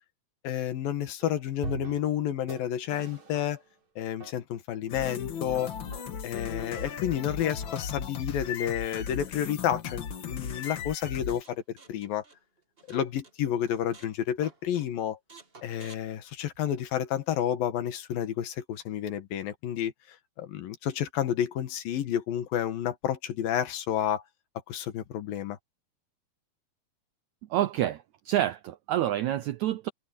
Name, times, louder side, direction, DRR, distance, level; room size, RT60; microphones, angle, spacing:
voice 1, 0.4-3.6 4.0-5.7 6.2-11.6 11.9-12.2 12.9-15.2 15.6-24.2 24.7-25.6, left 10 dB, 75° left, 3.3 m, -30 dB
sound 1, 1.2-1.3 1.6-2.2 2.5-2.6 2.9-3.7 4.2-4.3 5.1-5.2 5.9-6.0 6.8-6.9, right 3 dB, 50° right, 6.5 m, -40 dB
sound 2, 4.9-11.4, left 7 dB, 55° left, 1.3 m, -36 dB
sound 3, 11.4-13.3 13.7-14.2 14.4-14.9 15.3-16.9, right 4 dB, 30° right, 1.1 m, -53 dB
voice 2, 27.5-29.9, right 13 dB, 85° right, 1.6 m, -28 dB
omnidirectional pair, 4.1 m